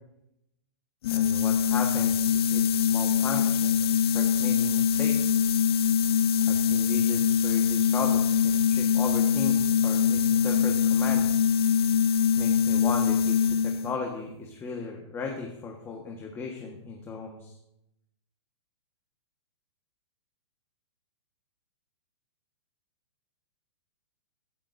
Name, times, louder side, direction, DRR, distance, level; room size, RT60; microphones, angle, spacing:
sound 1, 1.0-14.0, left 7 dB, 55° left, 0.7 m, -23 dB
voice 1, 1.1-5.4 6.4-11.4 12.4-17.5, left 4 dB, 15° left, 1 dB, 1.5 m, -36 dB
14.5 x 14.0 x 2.7 m, 0.85 s
hypercardioid pair, 140°, 15 cm